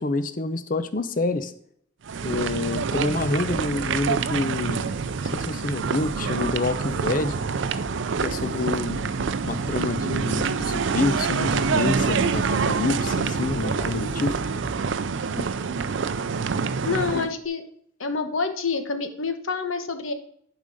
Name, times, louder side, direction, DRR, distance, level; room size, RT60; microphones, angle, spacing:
voice 1, 0.0-1.5 2.2-5.0 5.3-7.4 8.2-9.1 9.4-14.4 17.1-17.3, left 3 dB, 40° left, 11 dB, 0.6 m, -27 dB
sound 1, 2.1-17.3, right 5 dB, 60° right, 0.4 m, -26 dB
sound 2, 5.6-14.8, equal, 5° right, 3.4 m, -41 dB
voice 2, 15.3-15.8 16.8-17.6 18.0-20.1, left 4 dB, 75° left, 8 dB, 1.1 m, -28 dB
11.0 x 5.1 x 4.0 m, 0.66 s
head